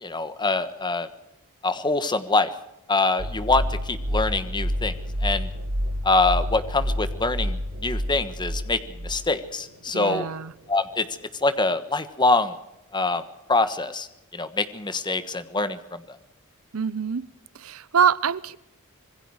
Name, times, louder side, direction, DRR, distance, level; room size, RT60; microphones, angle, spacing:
voice 1, 0.0-1.1 1.6-2.5 2.9-4.9 5.2-5.5 6.0-10.3 10.7-11.1 11.4-12.5 12.9-13.2 13.5-14.1 14.3-16.0, left 3 dB, 20° left, 1.3 m, -24 dB
sound 1, 3.2-10.4, equal, 85° right, 1.9 m, -29 dB
voice 2, 9.9-10.5 16.7-17.3 17.5-18.6, right 7 dB, 65° right, 0.7 m, -24 dB
26.0 x 21.5 x 4.8 m
head